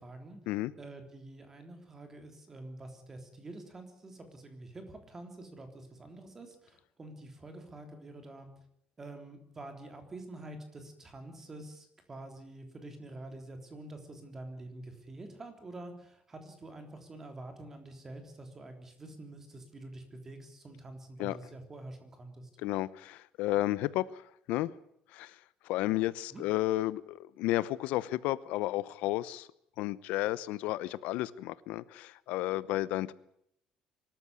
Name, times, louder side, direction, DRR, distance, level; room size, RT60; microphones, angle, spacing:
voice 1, 0.0-0.4 0.8-8.5 9.0-22.5 26.3-26.4, right 2 dB, 15° right, 6 dB, 3.4 m, -47 dB
voice 2, 22.6-24.7 25.1-29.5 29.8-33.1, left 16 dB, 80° left, 18 dB, 0.9 m, -32 dB
24.0 x 13.5 x 9.6 m, 0.73 s
cardioid pair, 180°, 2 cm